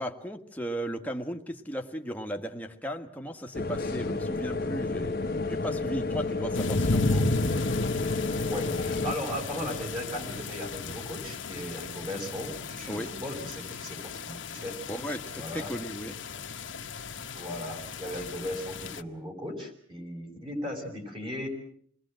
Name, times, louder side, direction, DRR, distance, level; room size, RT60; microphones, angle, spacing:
voice 1, 0.0-5.2 5.5-7.2 12.9-13.1 14.9-16.2, equal, 10° left, 4 dB, 1.7 m, -36 dB
sound 1, 3.5-9.2, left 3 dB, 50° left, 1.2 m, -31 dB
sound 2, 6.5-19.0, left 3 dB, 70° left, 1.3 m, -34 dB
voice 2, 8.5-14.8 15.4-15.7 17.3-21.5, equal, 25° right, 1 dB, 5.8 m, -37 dB
28.0 x 21.0 x 7.7 m, 0.63 s
head